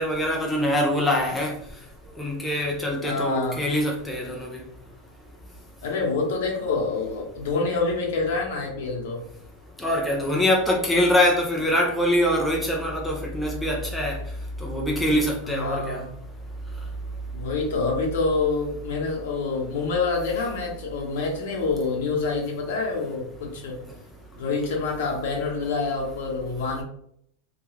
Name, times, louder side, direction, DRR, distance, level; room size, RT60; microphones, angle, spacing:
voice 1, 0.0-1.6 2.2-4.6 9.8-14.2 14.6-16.0, left 1 dB, 5° left, -2 dB, 0.3 m, -24 dB
voice 2, 3.0-3.6 5.8-9.2 15.4-16.1 17.3-23.8 24.4-26.8, left 4 dB, 65° left, 0 dB, 0.8 m, -27 dB
2.3 x 2.2 x 3.1 m, 0.70 s
supercardioid pair, 170°, 0 cm